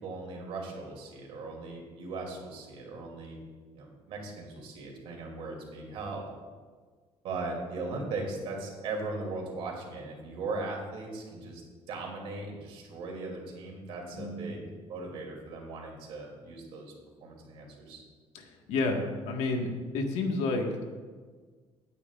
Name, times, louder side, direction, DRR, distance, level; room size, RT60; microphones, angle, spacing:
voice 1, 0.0-3.4 3.7-6.3 7.2-11.6 11.9-16.9 17.2-18.0, right 3 dB, 60° right, 0 dB, 2.7 m, -38 dB
voice 2, 14.2-14.5 18.3-19.7 19.9-20.9, left 3 dB, 85° left, 2 dB, 1.6 m, -30 dB
18.0 x 9.2 x 2.4 m, 1.5 s
cardioid pair, 175°, 11 cm